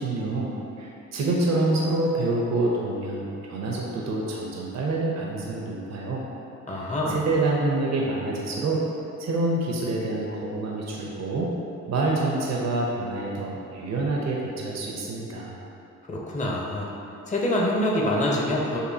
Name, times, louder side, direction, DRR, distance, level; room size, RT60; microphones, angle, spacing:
voice 1, 0.0-6.2 7.1-8.8 9.2-11.5 11.9-15.6, right 2 dB, 60° right, -3 dB, 0.7 m, -27 dB
voice 2, 6.7-7.2 16.1-16.9 17.3-18.8, left 1 dB, 25° left, -3 dB, 0.7 m, -25 dB
6.6 x 2.6 x 2.7 m, 2.9 s
cardioid pair, 65°, 30 cm